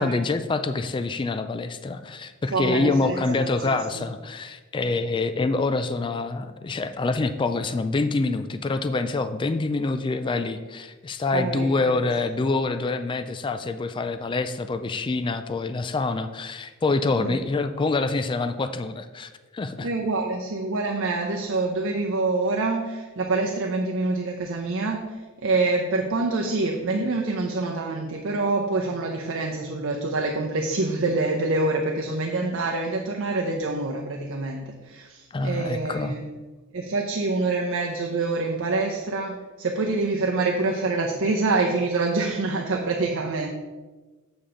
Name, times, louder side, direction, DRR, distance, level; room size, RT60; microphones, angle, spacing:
voice 1, 0.0-19.9 35.3-36.1, left 3 dB, 25° left, 10 dB, 0.3 m, -26 dB
voice 2, 2.5-4.1 11.3-12.0 17.2-17.4 19.8-36.2 36.7-43.5, right 3 dB, 65° right, 1 dB, 0.7 m, -26 dB
7.1 x 6.7 x 3.8 m, 1.3 s
head